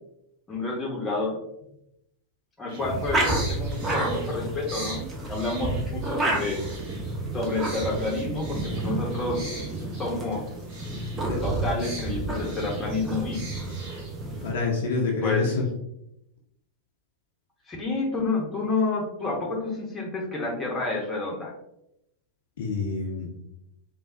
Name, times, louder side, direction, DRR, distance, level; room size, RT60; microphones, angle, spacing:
voice 1, 0.5-1.4 2.6-6.6 7.3-9.5 10.0-10.5 11.4-13.4 15.2-15.4 17.7-21.5, left 3 dB, 15° left, -1 dB, 0.9 m, -29 dB
sound 1, 2.7-14.4, right 1 dB, 45° right, 1.0 m, -43 dB
sound 2, 2.8-14.5, right 2 dB, 15° right, 0.7 m, -30 dB
voice 2, 14.4-15.7 22.6-23.3, left 4 dB, 55° left, -1 dB, 0.6 m, -27 dB
3.4 x 2.2 x 2.6 m, 0.79 s
figure-of-eight pair, 90°, 0 cm